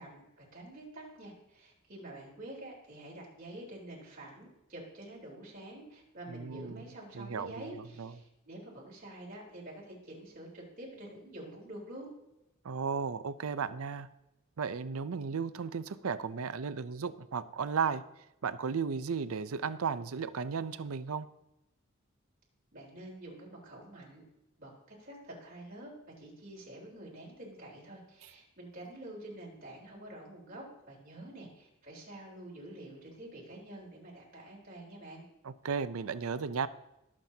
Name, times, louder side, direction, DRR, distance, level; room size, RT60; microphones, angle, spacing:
voice 1, 0.0-12.1 22.7-24.2 24.6-25.9 26.2-35.2, right 1 dB, 40° right, -3 dB, 3.7 m, -48 dB
voice 2, 6.3-6.8 7.1-8.1 12.6-14.1 14.6-18.0 18.4-21.3 35.4-36.7, right 5 dB, 80° right, 14 dB, 0.6 m, -35 dB
21.0 x 7.4 x 2.8 m, 0.91 s
head